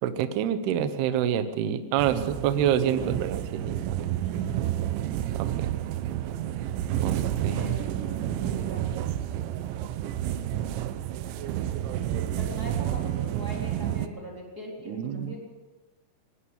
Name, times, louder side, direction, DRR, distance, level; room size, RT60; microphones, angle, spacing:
voice 1, 0.0-3.8 5.3-5.7 7.0-7.6 14.9-15.4, right 9 dB, 70° right, 10 dB, 2.7 m, -27 dB
sound 1, 2.0-14.1, right 12 dB, 90° right, 3.3 m, -30 dB
voice 2, 4.2-4.6 7.4-9.0 12.4-15.4, left 1 dB, 20° right, -2 dB, 4.2 m, -41 dB
20.0 x 19.0 x 7.2 m, 1.2 s
omnidirectional pair, 5.2 m